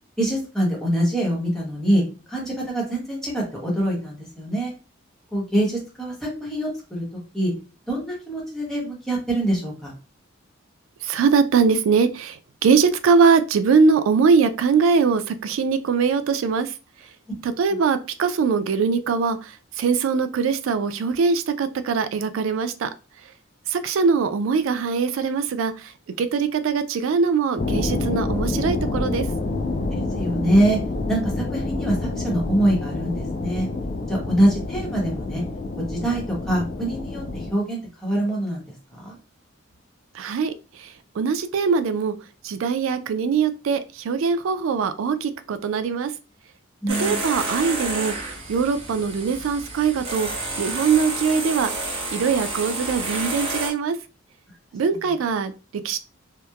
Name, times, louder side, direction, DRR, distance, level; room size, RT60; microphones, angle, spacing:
voice 1, 0.2-2.0 2.3-4.7 5.3-7.0 7.3-7.5 7.9-9.9 29.9-30.8 31.1-33.7 34.1-35.4 35.8-39.1 46.8-47.2 54.9-55.2, right 1 dB, ahead, 0.8 m, -24 dB
voice 2, 11.0-12.4 12.6-16.7 17.4-22.9 23.7-25.9 26.2-29.2 40.1-40.5 40.8-40.9 41.2-42.1 42.4-46.1 47.0-48.2 48.5-50.3 50.6-51.7 52.1-54.0 54.7-55.5 55.8-56.0, right 5 dB, 85° right, 0.3 m, -22 dB
sound 1, 27.6-37.5, left 2 dB, 40° left, 0.3 m, -28 dB
sound 2, 46.9-53.7, right 2 dB, 30° right, 0.6 m, -30 dB
2.8 x 2.1 x 2.3 m
head